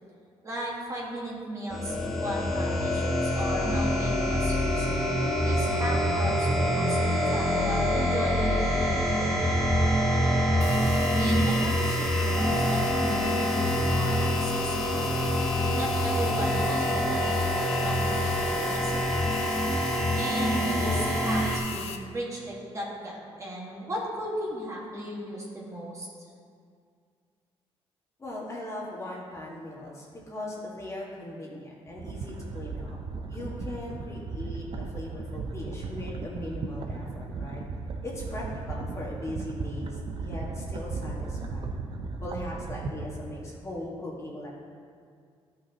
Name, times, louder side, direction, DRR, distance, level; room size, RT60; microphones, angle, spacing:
voice 1, 0.4-4.9 5.4-9.3 10.7-15.2 15.7-19.3 20.1-26.1, right 1 dB, 30° right, -4 dB, 1.8 m, -36 dB
sound 1, 1.7-21.6, equal, ahead, 1.2 m, -26 dB
sound 2, 10.6-22.0, left 7 dB, 75° left, 0.6 m, -38 dB
voice 2, 28.2-33.0 33.3-37.6 38.0-41.9 42.2-44.5, left 1 dB, 30° left, -5 dB, 1.8 m, -39 dB
sound 3, 31.9-43.4, right 3 dB, 55° right, 0.7 m, -36 dB
12.5 x 5.7 x 3.0 m, 2.2 s
cardioid pair, 105°, 11 cm